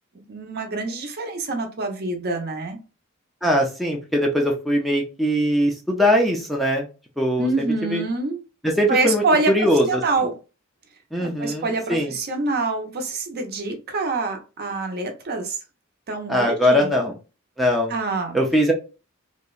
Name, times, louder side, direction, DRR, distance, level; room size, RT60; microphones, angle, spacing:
voice 1, 0.3-2.8 7.4-8.4 8.9-9.5 9.9-10.3 11.2-15.6 16.1-16.9 17.9-18.4, right 3 dB, 50° right, 4 dB, 0.6 m, -25 dB
voice 2, 3.4-6.9 7.2-7.5 7.9-8.0 8.6-10.0 11.1-12.1 16.3-17.1 17.6-17.9 18.3-18.7, equal, ahead, -1 dB, 0.4 m, -21 dB
2.7 x 2.1 x 2.3 m, 0.31 s
head